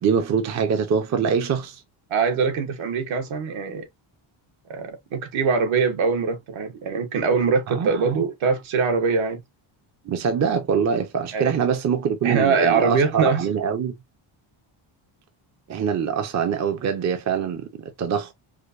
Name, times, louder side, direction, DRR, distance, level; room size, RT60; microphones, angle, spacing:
voice 1, 0.0-1.8 7.7-7.9 10.1-13.9 15.7-18.3, right 7 dB, 35° right, 0.6 m, -24 dB
voice 2, 2.1-3.9 4.7-9.4 11.3-11.6 12.2-13.5, right 5 dB, 70° right, 1.1 m, -23 dB
4.8 x 2.1 x 2.4 m
cardioid pair, 160°, 49 cm